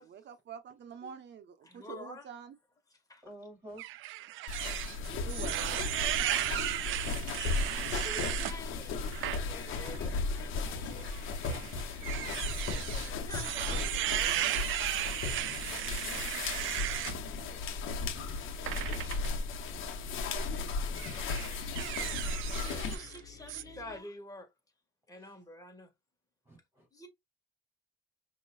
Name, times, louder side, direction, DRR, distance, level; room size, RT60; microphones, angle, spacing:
voice 1, 0.0-2.5 4.9-5.6, right 7 dB, 65° right, 1.0 m, -46 dB
voice 2, 1.6-2.3 2.9-3.2 4.9-5.0 5.9-6.1 7.1-11.3 12.4-12.5 12.8-14.5 22.3-24.5 25.1-25.9 26.9-27.1, left 1 dB, 15° left, 1.8 m, -48 dB
voice 3, 3.2-3.8 10.5-11.2 17.7-17.8 25.1-25.4 26.5-26.9, right 1 dB, 15° right, 3.1 m, -52 dB
sound 1, 3.8-8.6 9.1-9.4 9.8-10.0 11.0-17.2 18.7-19.3 20.2-20.5 21.0-23.2 23.5-23.6, right 14 dB, 80° right, 0.4 m, -35 dB
sound 2, 4.5-23.0, left 4 dB, 85° left, 1.0 m, -36 dB
sound 3, 6.8-24.0, left 6 dB, 40° left, 1.8 m, -54 dB
5.3 x 3.0 x 2.4 m
cardioid pair, 90°, 20 cm